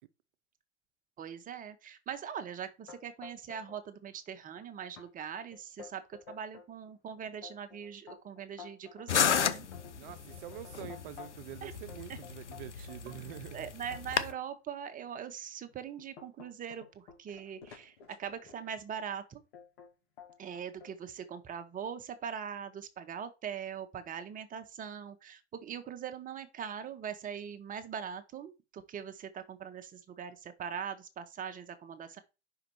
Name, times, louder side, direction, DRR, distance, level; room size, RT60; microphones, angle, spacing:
voice 1, 1.2-9.7 11.6-11.7 12.1-12.2 13.1-13.2 13.5-19.4 20.4-32.2, right 8 dB, 25° right, 1.0 m, -42 dB
sound 1, 2.9-3.8 4.1-4.6 5.0-5.1 5.5-6.7 7.2-11.5 11.9-14.4 15.1-15.2 15.7-18.8 19.5-19.9 20.2-20.9, left 7 dB, 60° left, 2.2 m, -52 dB
sound 2, 9.1-14.3, left 7 dB, 80° left, 0.7 m, -33 dB
voice 2, 10.0-13.7, right 14 dB, 50° right, 0.7 m, -46 dB
5.6 x 5.0 x 4.4 m
figure-of-eight pair, 90°, 34 cm